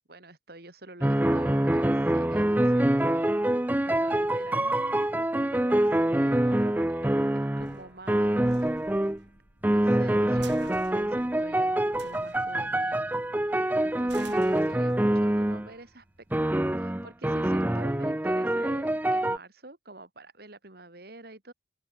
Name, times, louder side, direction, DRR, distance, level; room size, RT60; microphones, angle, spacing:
voice 1, 0.1-3.5 3.9-8.7 9.7-21.5, right 2 dB, 55° right, 2.7 m, -47 dB
sound 1, 1.0-7.8 8.1-9.2 9.6-15.7 16.3-19.4, right 1 dB, 10° right, 0.5 m, -25 dB
sound 2, 4.0-17.0, right 3 dB, 75° right, 6.5 m, -52 dB
open air
head